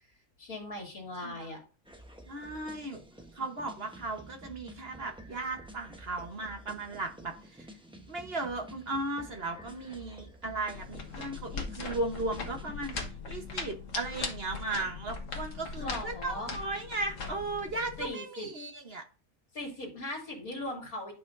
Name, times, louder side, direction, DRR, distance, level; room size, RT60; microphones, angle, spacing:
voice 1, 0.4-1.6 15.8-16.5 18.0-18.5 19.5-21.1, left 1 dB, 75° left, 3.2 m, -39 dB
voice 2, 1.2-1.5 2.3-3.0 3.3-7.7 8.1-12.9 13.3-19.0, right 2 dB, 45° right, 1.3 m, -36 dB
sound 1, 1.8-13.1, right 1 dB, 5° right, 0.8 m, -50 dB
sound 2, 10.7-18.1, left 4 dB, 60° left, 1.7 m, -40 dB
12.0 x 5.7 x 2.6 m
omnidirectional pair, 1.5 m